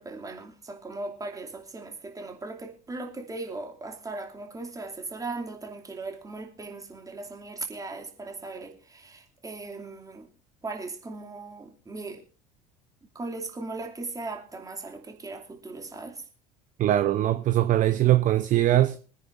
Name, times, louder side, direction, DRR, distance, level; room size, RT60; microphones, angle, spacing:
voice 1, 0.0-10.3 10.6-12.2 13.1-16.3, right 3 dB, 15° right, 2.7 m, -38 dB
voice 2, 16.8-19.0, right 13 dB, 40° right, 0.8 m, -21 dB
24.0 x 9.9 x 2.6 m
figure-of-eight pair, 70°, 21 cm